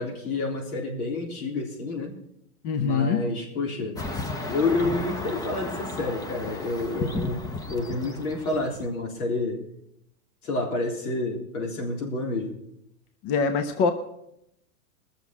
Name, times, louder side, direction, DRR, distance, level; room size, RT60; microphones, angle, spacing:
voice 1, 0.0-2.1 2.8-4.0 4.5-9.6 10.4-12.6, left 2 dB, 90° left, 0 dB, 3.9 m, -29 dB
voice 2, 2.6-3.2 13.2-13.9, left 5 dB, 40° left, 8 dB, 1.0 m, -23 dB
sound 1, 4.0-9.0, left 2 dB, 10° left, 0.6 m, -34 dB
19.5 x 7.1 x 6.0 m, 0.77 s
supercardioid pair, 135°, 43 cm